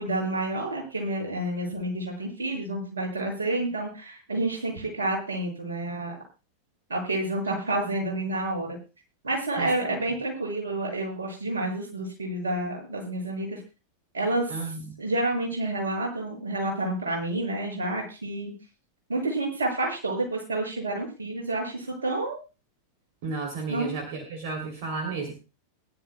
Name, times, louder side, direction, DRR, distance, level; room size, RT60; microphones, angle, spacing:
voice 1, 0.0-6.1 6.9-8.8 9.2-13.6 14.1-14.6 15.0-18.5 19.1-22.4 23.7-24.0, right 2 dB, 75° right, 0 dB, 6.8 m, -29 dB
voice 2, 14.5-14.9 23.2-25.3, right 4 dB, 55° right, 3 dB, 3.1 m, -33 dB
22.0 x 12.0 x 2.3 m, 0.31 s
figure-of-eight pair, 90°, 0 cm